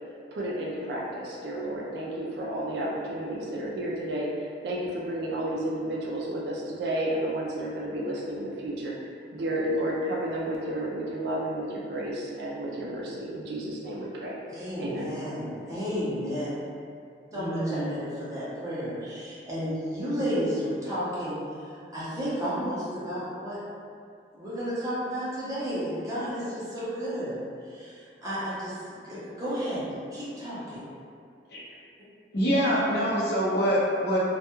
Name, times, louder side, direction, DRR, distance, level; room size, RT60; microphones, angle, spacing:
voice 1, 0.3-8.9 9.3-14.4 14.8-15.1, right 1 dB, 70° right, -4 dB, 0.3 m, -31 dB
voice 2, 14.5-16.5 17.3-23.6 24.3-27.4 27.7-29.9 30.1-30.8, equal, 20° right, -10 dB, 0.7 m, -32 dB
voice 3, 17.3-17.9 31.5-31.6 32.3-34.2, equal, 65° left, -6 dB, 0.6 m, -25 dB
2.2 x 2.2 x 2.9 m, 2.4 s
head